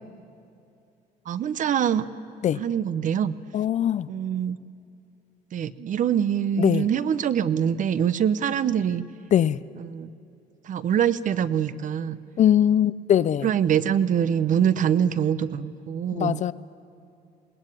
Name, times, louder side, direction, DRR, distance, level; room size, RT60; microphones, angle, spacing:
voice 1, 1.3-2.1 2.6-3.3 4.1-4.6 5.5-9.0 9.8-10.1 10.6-12.2 13.4-16.4, right 9 dB, 50° right, 15 dB, 0.8 m, -24 dB
voice 2, 3.5-4.1 6.6-6.9 9.3-9.6 12.4-13.5 16.1-16.5, left 10 dB, 45° left, 17 dB, 0.5 m, -21 dB
21.0 x 19.0 x 9.1 m, 2.6 s
cardioid pair, 110°, 17 cm